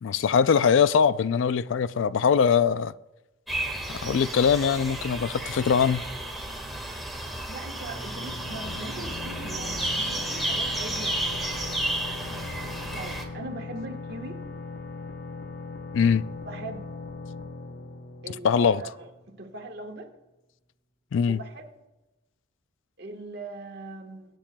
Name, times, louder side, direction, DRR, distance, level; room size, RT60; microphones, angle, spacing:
voice 1, 0.0-2.9 3.9-6.0 15.9-16.2 18.3-18.8 21.1-21.4, left 6 dB, 65° left, 0.3 m, -22 dB
sound 1, 3.5-13.2, right 1 dB, ahead, 1.5 m, -32 dB
voice 2, 7.5-11.7 12.9-14.4 16.5-16.9 18.2-20.1 21.3-21.6 23.0-24.3, right 2 dB, 50° right, 1.3 m, -40 dB
sound 2, 7.9-19.4, left 3 dB, 50° left, 0.7 m, -40 dB
22.5 x 8.8 x 2.2 m
head